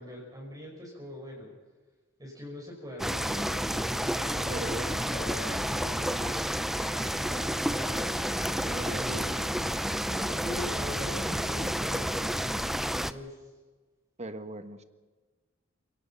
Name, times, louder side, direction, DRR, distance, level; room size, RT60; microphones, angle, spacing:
voice 1, 0.0-1.5 2.2-3.9 4.6-6.6 8.6-9.3 10.0-12.6 13.0-13.5, equal, 20° right, -3 dB, 5.4 m, -42 dB
Wind instrument woodwind instrument, 2.7-10.7, left 4 dB, 90° left, 1.4 m, -48 dB
sound 1, 3.0-13.1, equal, ahead, 0.6 m, -30 dB
voice 2, 4.5-5.1 8.7-9.3 14.2-14.8, right 1 dB, 35° right, 9 dB, 1.5 m, -39 dB
29.5 x 18.0 x 5.7 m, 1.3 s
head